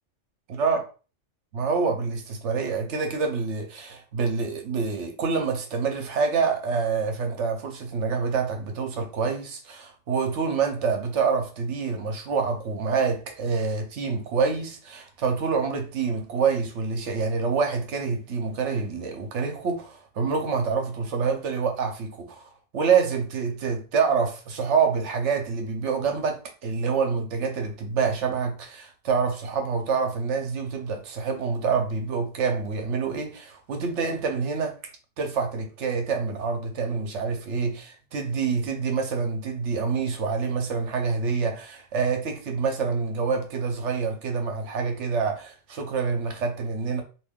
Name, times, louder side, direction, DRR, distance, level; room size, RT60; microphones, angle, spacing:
voice 1, 0.5-0.8 1.5-34.8 35.2-47.0, right 5 dB, 75° right, 1.0 m, -27 dB
2.7 x 2.6 x 3.6 m
omnidirectional pair, 1.3 m